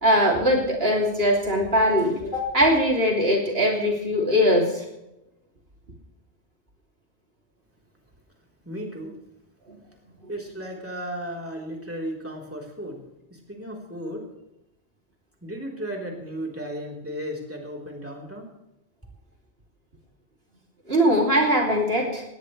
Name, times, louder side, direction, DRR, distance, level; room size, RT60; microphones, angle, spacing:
voice 1, 0.0-4.8 9.7-9.8 20.9-22.2, equal, 60° right, 0 dB, 3.3 m, -21 dB
voice 2, 8.6-9.1 10.3-13.0 13.3-14.3 15.4-18.5, equal, 10° right, -1 dB, 3.7 m, -35 dB
19.5 x 18.0 x 3.3 m, 0.90 s
omnidirectional pair, 1.2 m